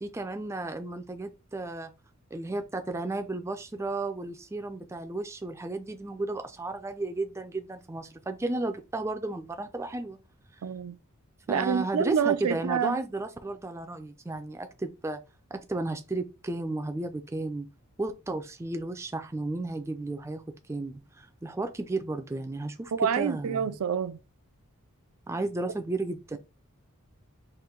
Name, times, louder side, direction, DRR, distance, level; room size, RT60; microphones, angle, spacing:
voice 1, 0.0-1.9 2.3-10.2 11.5-15.2 15.5-17.7 18.0-20.4 20.7-23.8 25.3-26.4, right 2 dB, 10° right, 0.4 m, -33 dB
voice 2, 10.6-11.0 11.5-13.0 22.9-24.2, right 7 dB, 80° right, 0.4 m, -27 dB
4.3 x 2.5 x 3.7 m
head